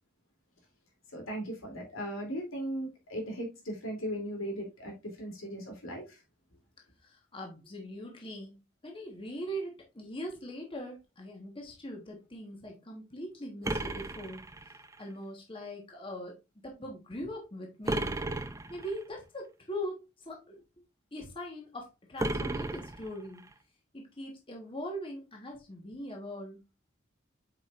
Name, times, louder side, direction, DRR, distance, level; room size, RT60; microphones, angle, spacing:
voice 1, 1.1-6.2, equal, 90° left, 2.8 m, -37 dB
voice 2, 7.0-8.6 8.8-14.5 15.0-18.2 18.7-20.6 21.1-23.5 23.9-26.6, equal, 25° left, 1.3 m, -41 dB
sound 1, 13.6-15.0 17.9-19.0 22.2-23.5, right 1 dB, 15° right, 0.4 m, -34 dB
7.3 x 5.1 x 2.5 m
head